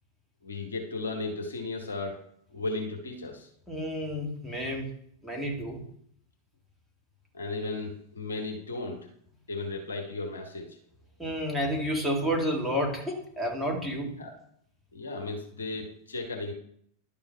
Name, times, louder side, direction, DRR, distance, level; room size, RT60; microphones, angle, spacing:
voice 1, 0.4-2.2 2.5-3.5 7.3-9.1 9.5-10.8 14.1-14.3 14.9-16.5, left 3 dB, 70° left, 3 dB, 1.2 m, -35 dB
voice 2, 3.7-4.9 5.2-5.8 11.2-14.1, equal, ahead, -2 dB, 1.6 m, -30 dB
11.0 x 3.8 x 4.5 m, 0.67 s
figure-of-eight pair, 90°, 0 cm